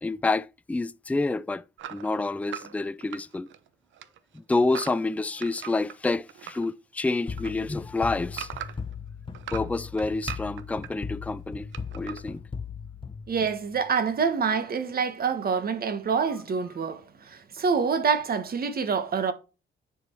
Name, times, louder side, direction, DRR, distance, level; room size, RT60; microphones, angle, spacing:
voice 1, 0.0-1.6 1.9-3.5 4.3-8.5 9.5-11.7 11.9-12.4, left 3 dB, 5° left, 0.4 m, -28 dB
sound 1, 1.8-3.7 3.9-6.7 7.0-8.9 9.3-10.9 11.7-12.2, right 11 dB, 85° right, 0.8 m, -40 dB
sound 2, 7.3-13.9, left 5 dB, 25° left, 0.9 m, -38 dB
voice 2, 13.3-19.3, right 6 dB, 50° right, 1.6 m, -26 dB
9.7 x 5.0 x 4.5 m
cardioid pair, 95°, 19 cm